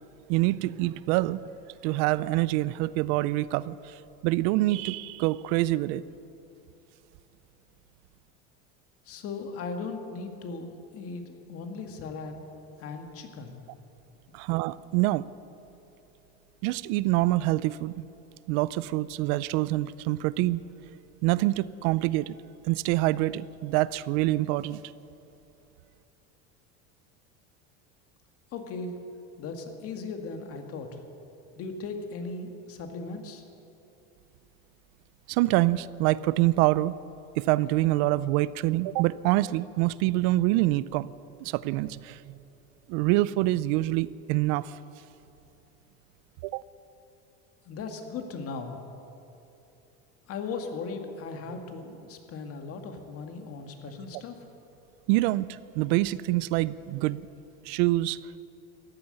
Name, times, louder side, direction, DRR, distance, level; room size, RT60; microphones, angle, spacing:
voice 1, 0.3-1.4 1.8-3.9 4.2-6.0 14.3-15.3 16.6-18.0 18.5-20.6 21.2-22.4 22.6-24.8 35.3-36.9 37.4-41.1 41.4-42.4 42.9-44.8 46.4-46.6 55.1-57.3 57.6-58.2, right 17 dB, 70° right, 19 dB, 0.5 m, -26 dB
voice 2, 9.1-12.4 12.8-13.6 28.5-28.9 29.4-31.0 31.6-33.4 47.7-48.8 50.3-54.4, left 4 dB, 45° left, 5 dB, 2.0 m, -37 dB
14.5 x 9.6 x 10.0 m, 2.8 s
cardioid pair, 135°, 32 cm